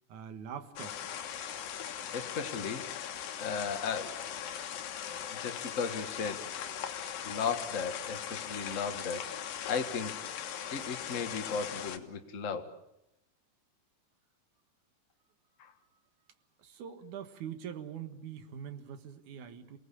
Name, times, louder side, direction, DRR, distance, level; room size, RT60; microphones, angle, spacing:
voice 1, 0.1-1.0 16.6-19.8, right 8 dB, 65° right, 8 dB, 2.9 m, -43 dB
sound 1, 0.8-12.0, left 9 dB, 80° left, 3.1 m, -40 dB
voice 2, 2.1-4.1 5.3-6.7 7.2-10.2 10.7-12.7 15.6-15.7, left 5 dB, 35° left, 6 dB, 1.4 m, -36 dB
28.5 x 19.0 x 8.6 m, 0.88 s
omnidirectional pair, 4.0 m